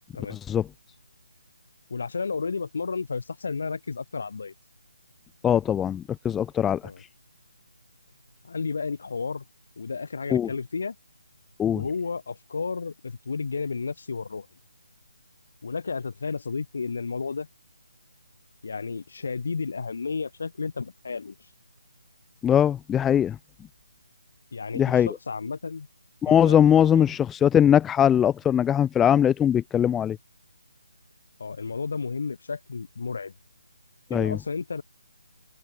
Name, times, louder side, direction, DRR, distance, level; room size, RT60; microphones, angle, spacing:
voice 1, 0.3-0.7 5.4-6.8 10.3-10.5 11.6-11.8 22.4-23.4 24.7-25.2 26.2-30.2 34.1-34.4, left 9 dB, 5° left, 0.4 m, -21 dB
voice 2, 1.9-4.5 6.8-7.0 8.4-9.4 9.8-11.0 11.7-14.5 15.6-17.5 18.6-21.3 24.5-25.9 26.3-26.6 27.0-27.2 31.4-33.3 34.1-34.8, left 4 dB, 60° left, 3.9 m, -32 dB
open air
hypercardioid pair, 165°, 0 cm